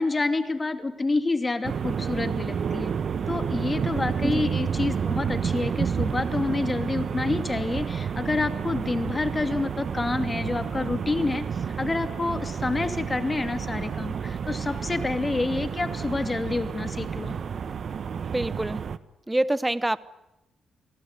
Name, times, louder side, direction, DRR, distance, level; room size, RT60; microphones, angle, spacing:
voice 1, 0.0-2.9 3.3-17.4, left 3 dB, 25° left, 8 dB, 2.5 m, -28 dB
sound 1, 1.6-19.0, right 7 dB, 55° right, 1.0 m, -30 dB
voice 2, 18.3-18.8 19.3-20.0, right 1 dB, 10° right, 16 dB, 0.9 m, -25 dB
27.5 x 18.0 x 9.6 m, 0.94 s
cardioid pair, 80°, 0 cm